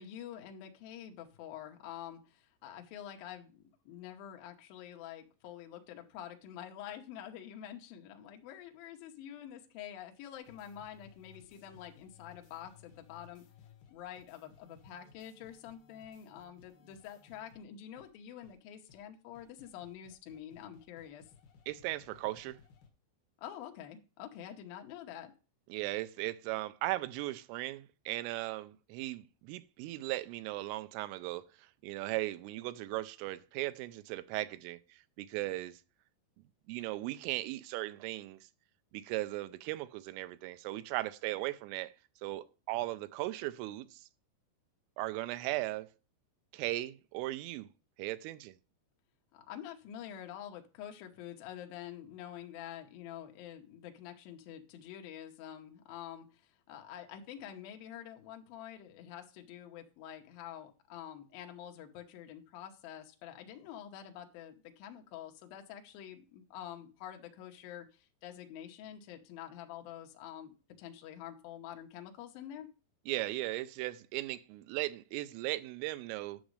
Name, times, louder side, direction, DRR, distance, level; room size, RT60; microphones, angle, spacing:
voice 1, 0.0-13.4 13.9-21.2 23.4-25.3 49.3-72.7, left 10 dB, 85° left, 2.0 m, -47 dB
sound 1, 10.3-17.6 18.0-18.1 18.4-18.6 18.9-19.0 19.3-22.9, left 7 dB, 65° left, 2.4 m, -60 dB
voice 2, 21.7-22.6 25.7-35.8 36.7-38.4 38.9-41.9 42.2-44.0 45.0-45.9 46.5-47.7 48.0-48.6 73.1-76.4, right 17 dB, 90° right, 3.2 m, -37 dB
10.5 x 6.2 x 3.2 m
omnidirectional pair, 5.7 m